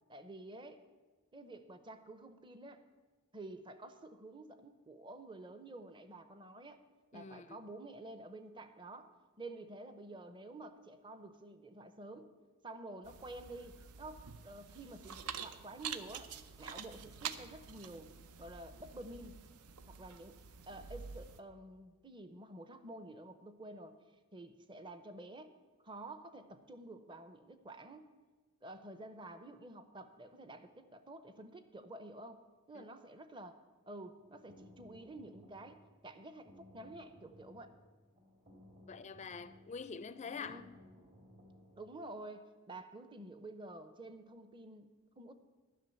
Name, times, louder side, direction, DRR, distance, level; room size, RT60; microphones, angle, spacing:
voice 1, 0.1-0.8 1.3-2.8 3.3-6.8 7.1-12.3 12.6-16.3 16.6-18.1 18.4-19.4 19.9-20.4 20.7-24.0 24.3-25.5 25.8-28.1 28.6-33.6 33.9-37.8 40.3-40.7 41.8-45.3, right 2 dB, 20° right, 0.6 m, -50 dB
voice 2, 7.1-7.6 32.8-32.9 38.9-40.6, left 5 dB, 30° left, 0.4 m, -45 dB
sound 1, 13.0-21.4, right 7 dB, 85° right, 0.6 m, -48 dB
sound 2, 34.2-41.9, left 1 dB, 45° right, 1.8 m, -60 dB
11.0 x 6.2 x 9.2 m
head